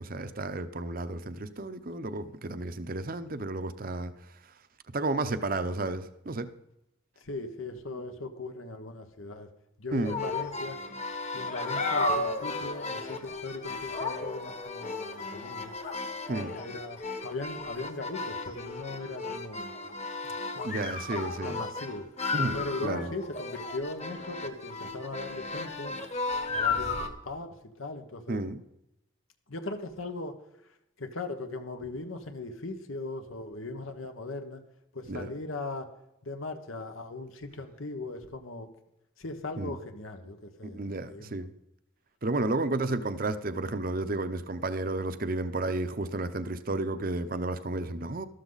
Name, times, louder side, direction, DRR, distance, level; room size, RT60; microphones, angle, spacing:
voice 1, 0.0-4.1 4.4-4.5 4.9-6.5 9.9-10.2 16.3-16.5 20.6-21.6 22.3-23.1 28.3-28.6 35.1-35.3 39.6-39.7 40.6-41.5 42.2-48.2, right 2 dB, 45° right, 11 dB, 0.7 m, -32 dB
voice 2, 7.2-9.5 9.8-10.8 11.3-15.7 16.3-19.7 20.5-20.9 21.4-22.1 22.5-25.9 26.5-28.4 29.5-30.3 31.0-34.6 34.9-35.9 36.2-38.7 39.2-41.3, left 2 dB, 85° left, 6 dB, 1.3 m, -39 dB
sound 1, 10.0-27.1, left 3 dB, 35° left, 1.3 m, -34 dB
13.0 x 13.0 x 4.0 m, 0.82 s
head